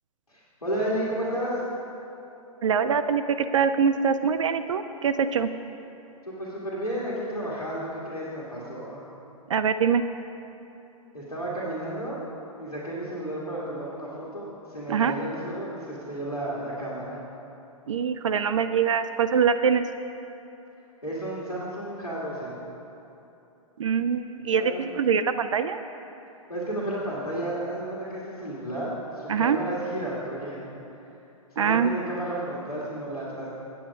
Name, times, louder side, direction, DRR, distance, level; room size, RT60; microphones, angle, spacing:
voice 1, 0.3-1.6 6.2-9.0 11.1-12.2 12.6-17.2 21.0-22.5 24.5-24.9 26.5-30.7 31.5-33.5, right 1 dB, 90° left, -7 dB, 1.9 m, -32 dB
voice 2, 2.6-5.5 9.5-10.0 14.9-15.1 17.9-19.8 23.8-25.8 29.3-29.6 31.6-32.3, right 6 dB, 60° right, 9 dB, 0.4 m, -24 dB
8.5 x 8.5 x 5.3 m, 2.9 s
figure-of-eight pair, 110°, 19 cm